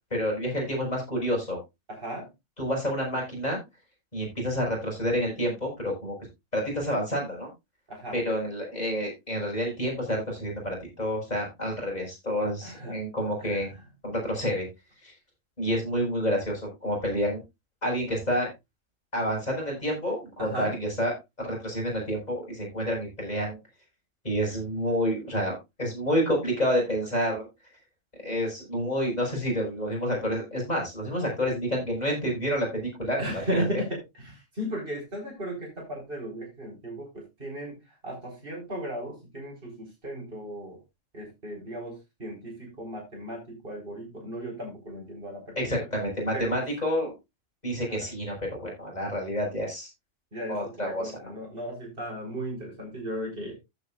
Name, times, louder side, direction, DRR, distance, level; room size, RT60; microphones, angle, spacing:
voice 1, 0.1-1.6 2.6-3.6 4.1-6.2 6.5-7.5 8.1-13.7 14.0-14.7 15.0-15.1 15.6-17.4 17.8-18.5 19.1-23.6 24.2-27.5 28.2-33.4 45.6-47.1 47.6-49.9 50.5-51.1, equal, 30° left, -1 dB, 5.9 m, -29 dB
voice 2, 1.9-2.3 7.9-8.2 12.6-13.0 13.4-13.6 20.4-20.8 33.2-40.8 41.1-45.9 46.3-46.7 47.8-48.1 50.3-53.6, right 1 dB, 45° right, -1 dB, 4.8 m, -36 dB
14.5 x 8.0 x 2.5 m, 0.22 s
omnidirectional pair, 1.3 m